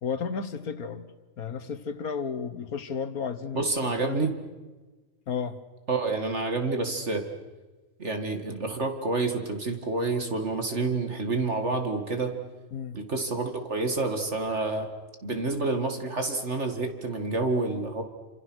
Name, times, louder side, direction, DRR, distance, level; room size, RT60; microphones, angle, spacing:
voice 1, 0.0-1.1 1.4-4.3 5.3-5.6 12.7-13.0, left 6 dB, 85° left, 11 dB, 1.9 m, -33 dB
voice 2, 3.5-4.4 5.9-7.3 8.0-12.3 12.9-14.9 15.2-18.0, right 3 dB, 50° right, 5 dB, 2.5 m, -28 dB
28.5 x 27.5 x 6.3 m, 1.3 s
omnidirectional pair, 1.5 m